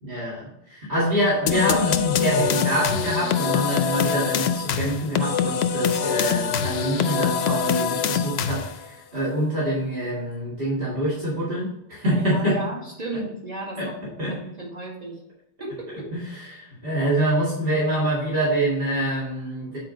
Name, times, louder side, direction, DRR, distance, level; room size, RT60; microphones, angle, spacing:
voice 1, 0.0-12.6 13.8-13.9 14.2-14.3 16.1-19.8, right 1 dB, 60° right, -6 dB, 2.2 m, -25 dB
sound 1, 1.5-8.8, left 7 dB, 90° left, 0.9 m, -24 dB
voice 2, 12.1-15.2 15.6-16.1, right 1 dB, 40° right, -4 dB, 2.3 m, -35 dB
8.5 x 4.3 x 3.8 m, 0.85 s
omnidirectional pair, 1.0 m